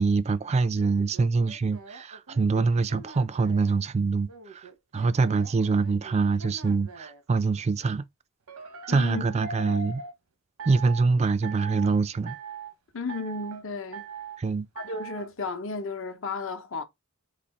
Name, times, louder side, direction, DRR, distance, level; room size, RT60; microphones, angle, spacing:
voice 1, 0.0-4.6 4.9-8.0 8.9-10.0 10.7-12.4 14.4-14.7, right 4 dB, 30° right, 0.3 m, -25 dB
sound 1, 0.8-3.7 4.3-7.2 8.5-10.1 10.6-11.1 11.4-12.0 12.3-12.7 13.1-13.6 13.9-14.4 14.8-15.3, right 5 dB, 85° right, 0.9 m, -42 dB
voice 2, 8.9-9.2 12.9-14.0 14.8-16.8, left 4 dB, 65° left, 0.8 m, -33 dB
4.1 x 2.7 x 4.3 m
head